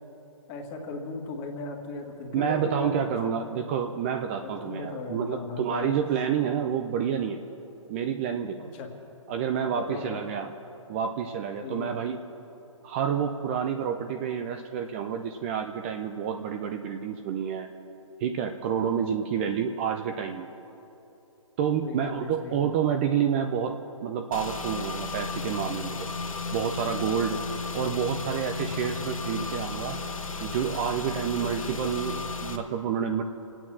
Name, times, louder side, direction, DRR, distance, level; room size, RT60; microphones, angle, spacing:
voice 1, 0.5-3.3 4.3-6.0 8.6-8.9 9.7-10.2 11.6-11.9 21.8-22.7, left 3 dB, 25° left, 1 dB, 1.8 m, -37 dB
voice 2, 2.3-7.4 7.9-8.7 9.3-10.5 10.9-12.2 12.8-17.7 18.2-20.5 21.6-23.8 24.0-26.0 26.5-27.4 27.7-30.0 30.4-33.2, right 8 dB, 25° right, 6 dB, 0.5 m, -29 dB
Car / Engine, 24.3-32.6, left 3 dB, 90° left, 1.4 m, -34 dB
26.0 x 8.9 x 6.1 m, 2.9 s
hypercardioid pair, 150°, 17 cm